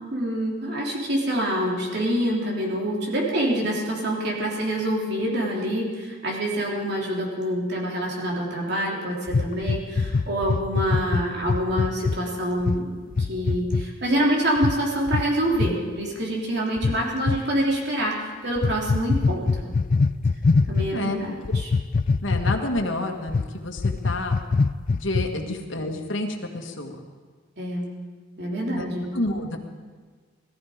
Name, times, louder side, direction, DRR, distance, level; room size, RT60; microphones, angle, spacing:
voice 1, 0.0-12.9 13.2-19.7 20.7-21.7 25.4-25.6 27.6-27.9 28.4-29.1, right 1 dB, 55° right, -2 dB, 3.4 m, -26 dB
sound 1, 9.3-12.2 12.6-12.8 13.1-13.9 14.6-14.8 15.1-15.3 15.5-15.7 16.8-17.4 18.6-20.9 21.4-22.8 23.3-23.5 23.8-25.4, left 4 dB, 45° left, 0.4 m, -23 dB
voice 2, 22.2-24.4 24.9-27.0 28.7-28.9 29.1-29.6, left 2 dB, 70° left, 2 dB, 1.8 m, -29 dB
19.0 x 14.0 x 5.1 m, 1.5 s
head